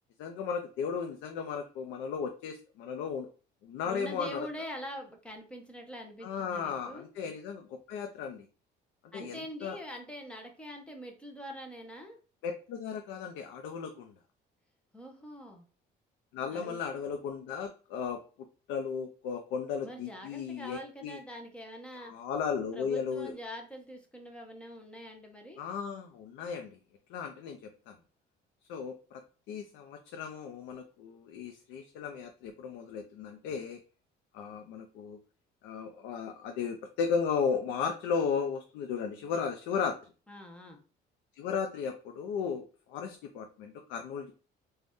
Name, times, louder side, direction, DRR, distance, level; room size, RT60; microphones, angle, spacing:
voice 1, 0.2-3.3 3.6-4.4 6.2-8.5 9.1-9.8 12.4-14.1 16.3-18.2 18.7-21.2 22.0-23.3 25.6-26.8 27.1-28.0 28.7-29.2 29.5-33.8 34.3-35.2 35.6-40.0 41.4-44.3, left 6 dB, 80° left, 5 dB, 0.4 m, -35 dB
voice 2, 3.8-7.1 9.1-12.2 14.9-15.7 16.5-16.8 19.8-22.1 22.7-25.6 40.3-40.8, equal, 5° left, 2 dB, 0.4 m, -44 dB
2.6 x 2.1 x 3.4 m, 0.36 s
cardioid pair, 165°, 18 cm